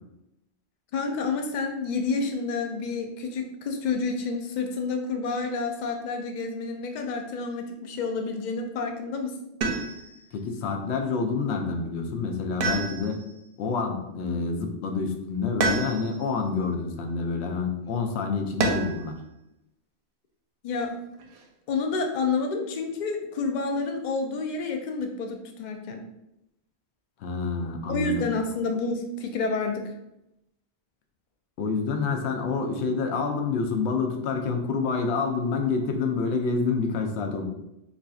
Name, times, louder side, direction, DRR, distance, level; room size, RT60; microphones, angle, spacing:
voice 1, 0.9-9.3 20.6-20.9 21.7-26.0 27.9-29.8, left 4 dB, 55° left, 4 dB, 0.5 m, -29 dB
sound 1, 9.6-10.2 12.6-13.4 15.6-16.3 18.6-19.1 20.8-21.4, right 3 dB, 65° right, 0.7 m, -28 dB
voice 2, 10.3-13.2 13.6-19.1 27.2-28.3 31.6-37.5, left 4 dB, 90° left, 4 dB, 0.8 m, -28 dB
4.1 x 2.5 x 2.3 m, 0.87 s
omnidirectional pair, 1.1 m